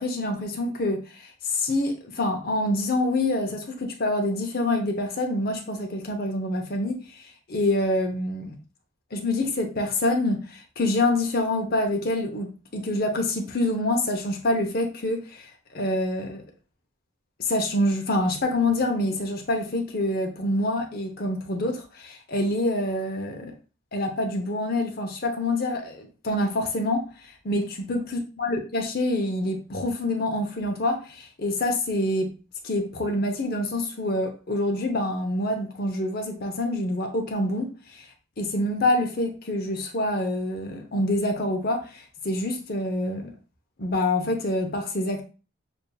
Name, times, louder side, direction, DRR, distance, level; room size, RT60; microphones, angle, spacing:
voice 1, 0.0-8.6 9.1-15.4 15.7-16.4 17.4-23.5 23.9-32.3 32.6-38.0 38.4-43.3 43.8-45.2, left 1 dB, 45° left, 0.8 m, -26 dB
6.7 x 2.6 x 2.3 m
head